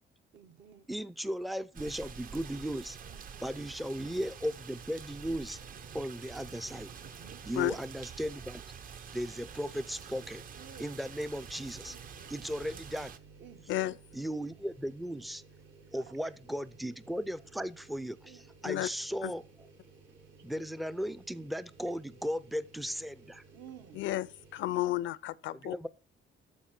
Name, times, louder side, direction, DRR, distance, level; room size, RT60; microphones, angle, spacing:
voice 1, 0.3-0.9 3.0-3.5 7.0-7.4 10.5-10.8 11.8-12.5 13.4-13.9 15.9-16.0 18.2-18.4 20.3-20.4 23.5-24.0, right 8 dB, 70° right, 1.5 m, -53 dB
voice 2, 0.9-3.0 3.4-5.6 5.9-6.9 7.5-8.6 9.1-10.4 10.8-12.0 12.3-13.1 14.1-15.4 15.9-19.4 20.4-23.4 25.5-25.9, equal, ahead, 0.4 m, -36 dB
sound 1, 1.7-13.2, right 7 dB, 45° right, 0.8 m, -47 dB
sound 2, 5.5-7.7 8.1-8.2 9.3-24.7, right 4 dB, 90° right, 4.5 m, -57 dB
voice 3, 23.9-24.3 24.5-25.7, left 15 dB, 75° left, 0.5 m, -31 dB
13.5 x 5.0 x 4.4 m
cardioid pair, 155°, 20 cm